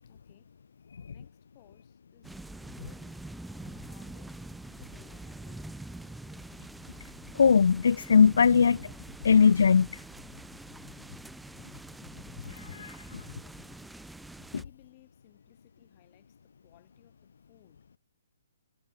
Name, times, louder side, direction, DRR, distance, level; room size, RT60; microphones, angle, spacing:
voice 1, 0.0-0.6 1.0-4.5 4.8-5.9 13.4-14.1 14.6-17.9, left 21 dB, 30° left, 7.6 m, -62 dB
sound 1, 2.2-14.6, right 2 dB, 5° right, 0.6 m, -45 dB
voice 2, 7.3-8.9 9.2-10.0 12.5-13.2, left 6 dB, 70° left, 0.3 m, -21 dB
hypercardioid pair, 155°, 0 cm